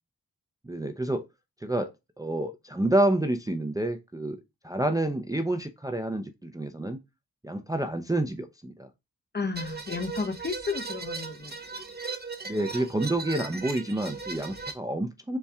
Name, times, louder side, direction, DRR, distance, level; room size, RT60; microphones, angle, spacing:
voice 1, 0.6-1.3 1.6-4.4 4.6-7.0 7.4-8.9 12.5-15.4, right 1 dB, 10° right, 0.5 m, -28 dB
voice 2, 9.3-11.6, left 4 dB, 30° left, 0.7 m, -32 dB
sound 1, 9.5-14.7, right 4 dB, 30° right, 1.1 m, -37 dB
4.2 x 2.3 x 3.4 m
cardioid pair, 50°, 36 cm